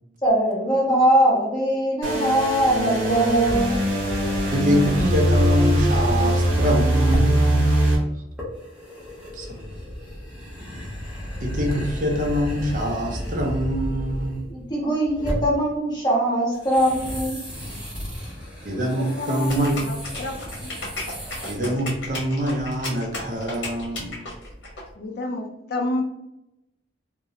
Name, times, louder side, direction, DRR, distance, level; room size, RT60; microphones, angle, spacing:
voice 1, 0.2-3.8 14.5-17.4, right 1 dB, 20° left, 0.9 m, -21 dB
sound 1, 2.0-8.0, right 1 dB, 85° right, 0.8 m, -21 dB
sound 2, 2.1-7.5 8.4-14.7 15.0-15.6 16.5-21.6, equal, 5° right, 0.7 m, -33 dB
voice 2, 4.5-7.8 9.3-9.7 11.4-14.4 18.6-19.8 21.4-24.3, equal, 45° right, 0.4 m, -24 dB
voice 3, 18.7-20.7 25.0-26.0, left 2 dB, 55° left, 0.3 m, -30 dB
sound 3, 19.5-24.8, left 2 dB, 70° left, 0.9 m, -34 dB
2.4 x 2.0 x 2.8 m
head